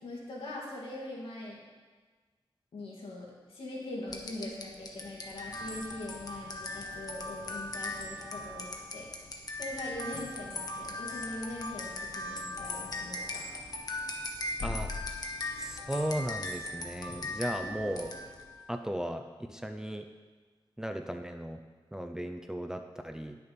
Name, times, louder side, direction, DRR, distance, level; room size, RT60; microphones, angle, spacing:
voice 1, 0.0-1.6 2.7-8.7 8.9-9.1 9.5-13.4, left 1 dB, 90° left, -4 dB, 2.4 m, -42 dB
sound 1, 4.1-18.5, left 2 dB, 45° left, 1.0 m, -39 dB
voice 2, 15.6-18.1 18.7-19.2 19.5-20.0 20.8-21.6 21.9-23.4, equal, 5° right, 5 dB, 0.4 m, -36 dB
9.7 x 6.8 x 5.2 m, 1.4 s
wide cardioid pair, 170°, 9 cm